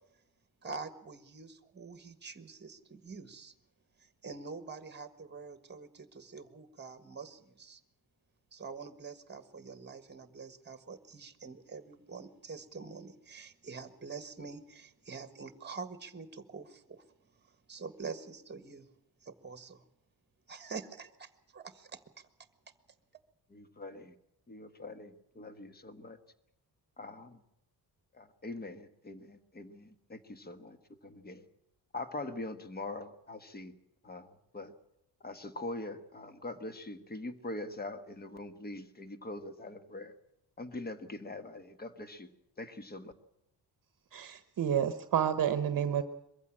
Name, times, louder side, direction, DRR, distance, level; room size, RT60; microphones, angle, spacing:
voice 1, 0.6-3.5 4.0-7.8 8.5-17.0 17.4-18.9 19.2-19.9 20.5-22.3, right 4 dB, 25° right, 10 dB, 1.5 m, -46 dB
voice 2, 23.5-24.1 24.5-26.2 27.0-27.4 28.2-30.8 31.0-31.4 31.9-33.7 34.0-34.3 34.5-34.7 35.2-40.1 40.6-42.3 42.6-43.1, left 2 dB, 25° left, 10 dB, 1.4 m, -43 dB
voice 3, 44.1-46.0, right 9 dB, 55° right, 10 dB, 1.0 m, -30 dB
22.5 x 15.0 x 8.7 m, 0.83 s
wide cardioid pair, 135°, 40 cm